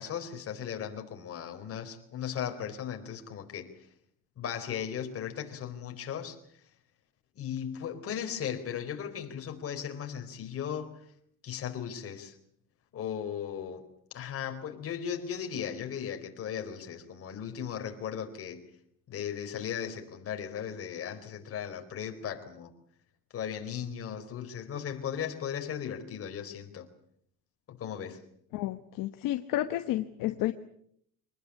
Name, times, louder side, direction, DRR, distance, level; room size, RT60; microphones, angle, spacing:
voice 1, 0.0-3.7 4.4-6.4 7.4-11.0 11.4-12.4 12.9-13.9 14.1-18.6 19.1-22.7 23.3-26.9 27.7-28.2, left 8 dB, 35° left, 5 dB, 4.2 m, -37 dB
voice 2, 28.5-30.5, left 14 dB, 60° left, 8 dB, 1.3 m, -31 dB
25.0 x 20.0 x 8.5 m, 0.69 s
cardioid pair, 145°, 37 cm